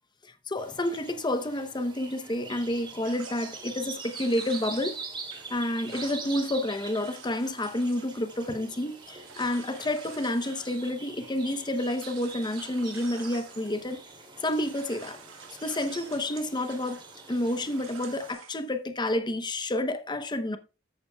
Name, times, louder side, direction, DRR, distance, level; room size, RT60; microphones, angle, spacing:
voice 1, 0.2-5.0 5.5-14.0 14.4-15.2 15.6-17.0 17.3-20.6, left 1 dB, 20° left, 0.8 m, -29 dB
sound 1, 0.6-18.3, right 4 dB, 25° right, 2.6 m, -44 dB
sound 2, 3.0-14.1 14.4-18.7, right 7 dB, 85° right, 1.7 m, -49 dB
13.5 x 8.5 x 2.3 m
head